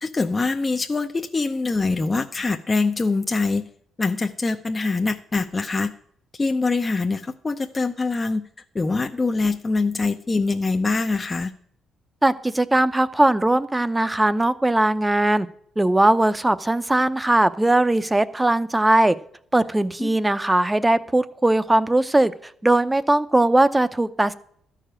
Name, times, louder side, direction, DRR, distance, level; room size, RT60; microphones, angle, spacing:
voice 1, 0.0-3.7 4.0-5.9 6.3-8.4 8.7-11.5 20.0-20.1, left 3 dB, 25° left, 5 dB, 0.6 m, -24 dB
voice 2, 12.2-15.5 15.8-19.2 19.5-22.3 22.6-24.3, right 1 dB, 15° right, 12 dB, 0.7 m, -19 dB
13.0 x 5.0 x 8.9 m, 0.64 s
cardioid pair, 90°, 0 cm